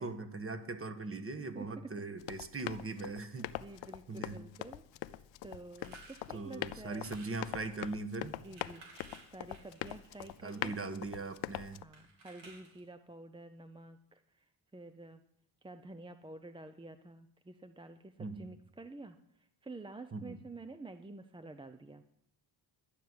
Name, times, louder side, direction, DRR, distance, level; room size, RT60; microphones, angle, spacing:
voice 1, 0.0-3.5 4.1-4.4 6.3-8.3 10.4-11.8 18.2-18.5 20.1-20.4, right 3 dB, 30° right, 10 dB, 1.3 m, -40 dB
voice 2, 1.5-1.9 3.1-7.1 8.4-9.1 9.3-10.8 11.8-14.5 14.7-15.2 15.6-19.2 19.6-22.0, right 2 dB, 10° right, 9 dB, 0.5 m, -50 dB
Run, 2.2-11.8, left 14 dB, 80° left, 0.6 m, -43 dB
sound 1, 5.8-6.2 6.9-7.4 8.3-10.8 11.9-12.9, right 3 dB, 75° right, 4.0 m, -56 dB
12.0 x 6.8 x 9.4 m, 0.79 s
cardioid pair, 95°, 44 cm